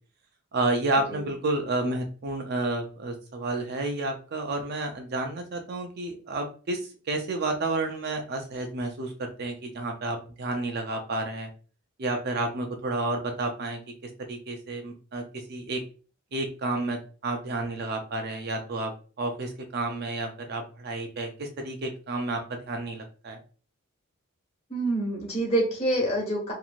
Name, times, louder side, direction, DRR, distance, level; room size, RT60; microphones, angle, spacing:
voice 1, 0.5-6.8 7.1-11.5 12.0-13.8 14.3-15.2 15.5-15.8 16.3-18.9 19.2-23.4, right 2 dB, 50° right, 4 dB, 0.4 m, -30 dB
voice 2, 24.7-26.5, right 1 dB, 30° left, -3 dB, 1.4 m, -26 dB
3.0 x 2.6 x 2.4 m, 0.38 s
head